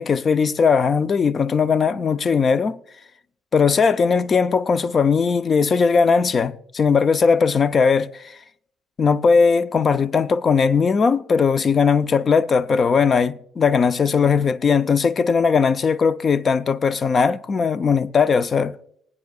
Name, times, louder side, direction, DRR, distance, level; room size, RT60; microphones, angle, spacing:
voice 1, 0.0-2.8 3.5-8.3 9.0-18.8, left 5 dB, 30° left, 0.4 m, -19 dB
22.5 x 9.4 x 2.4 m
cardioid pair, 145°, 0 cm